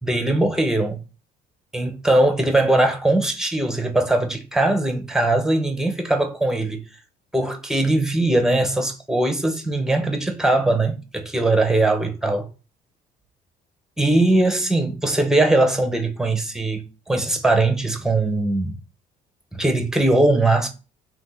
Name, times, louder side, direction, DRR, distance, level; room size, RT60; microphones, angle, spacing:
voice 1, 0.0-1.0 1.7-6.8 7.3-12.4 14.0-18.8 19.5-20.7, right 2 dB, 5° right, 0.8 m, -20 dB
3.5 x 3.1 x 4.0 m
cardioid pair, 110°, 17 cm